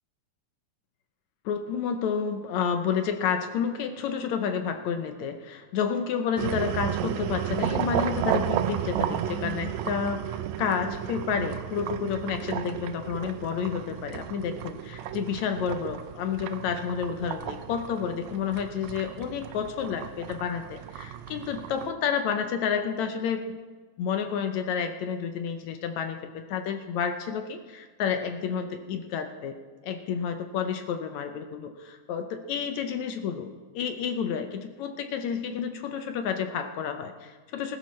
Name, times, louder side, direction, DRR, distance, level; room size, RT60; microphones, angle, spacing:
voice 1, 1.5-23.6 24.0-29.6 29.8-37.8, left 7 dB, 75° left, 7 dB, 1.9 m, -30 dB
sound 1, 6.4-21.9, right 10 dB, 80° right, 1.6 m, -33 dB
20.0 x 12.0 x 3.1 m, 1.4 s
omnidirectional pair, 3.6 m